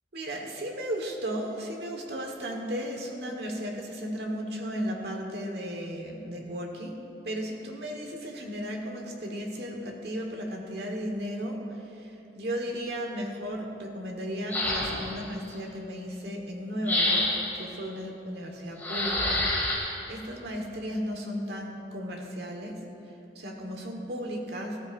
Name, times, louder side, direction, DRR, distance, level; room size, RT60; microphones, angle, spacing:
voice 1, 0.1-22.9 23.3-24.9, equal, 60° right, 1 dB, 1.4 m, -35 dB
sound 1, 14.5-15.2 16.9-17.6 18.8-19.8, left 1 dB, 10° left, 2.3 m, -27 dB
14.5 x 13.5 x 2.6 m, 2.9 s
head